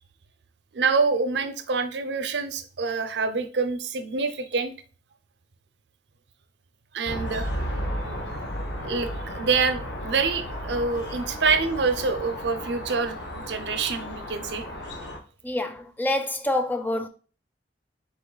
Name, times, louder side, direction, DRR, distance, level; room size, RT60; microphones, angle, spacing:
voice 1, 0.7-4.7 6.9-7.5 8.8-14.6, right 4 dB, 70° right, 0.5 m, -26 dB
sound 1, 7.1-15.2, equal, 80° left, 1.1 m, -34 dB
voice 2, 15.4-17.1, left 1 dB, 10° left, 0.4 m, -27 dB
4.2 x 3.0 x 3.8 m
head